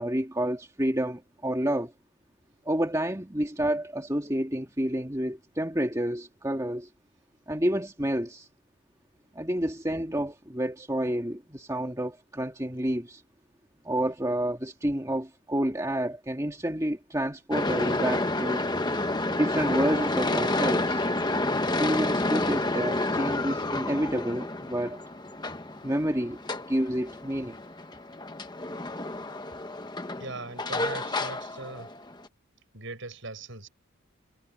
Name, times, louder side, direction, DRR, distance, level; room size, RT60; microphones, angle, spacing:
voice 1, 0.0-1.9 2.7-6.9 7.5-8.5 9.4-13.2 13.8-18.7 19.3-21.0 21.8-25.0 25.8-26.4 26.7-27.6, right 1 dB, 15° right, 2.0 m, -29 dB
sound 1, 17.5-32.3, left 2 dB, 20° left, 1.1 m, -30 dB
voice 2, 30.1-31.9 32.7-33.7, right 2 dB, 60° right, 7.5 m, -40 dB
head